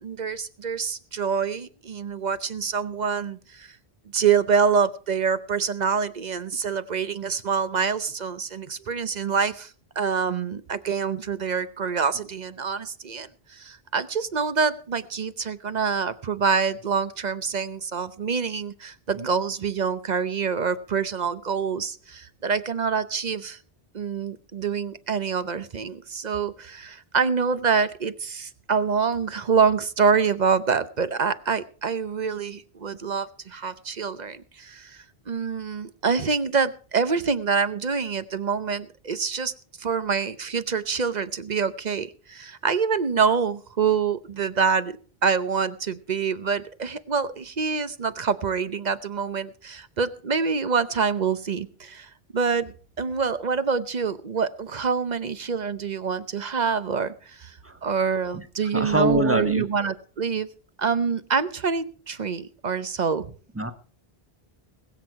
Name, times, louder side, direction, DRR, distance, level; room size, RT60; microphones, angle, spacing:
voice 1, 0.0-3.7 4.1-9.7 10.0-23.6 23.9-35.0 35.3-39.5 39.8-45.0 45.2-52.7 53.0-57.6 57.8-60.5 60.8-63.3, right 5 dB, 45° right, 13 dB, 0.8 m, -26 dB
voice 2, 58.7-59.6 63.5-63.7, equal, 15° right, 9 dB, 1.1 m, -24 dB
20.5 x 8.0 x 4.7 m, 0.41 s
omnidirectional pair, 1.0 m